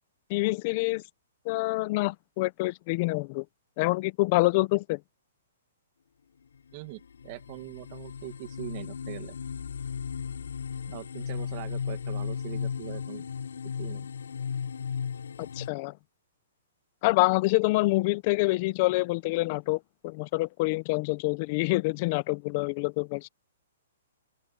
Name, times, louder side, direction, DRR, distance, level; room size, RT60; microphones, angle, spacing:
voice 1, 0.3-1.0 1.5-3.4 3.8-5.0 15.6-15.9 17.0-23.3, left 22 dB, 40° left, 1.0 m, -26 dB
sound 1, 6.7-6.8 7.2-15.7, left 7 dB, 85° left, 5.5 m, -35 dB
voice 2, 6.7-9.3 10.9-13.2 13.8-14.1, right 23 dB, 40° right, 2.4 m, -42 dB
open air
hypercardioid pair, 145°, 0 cm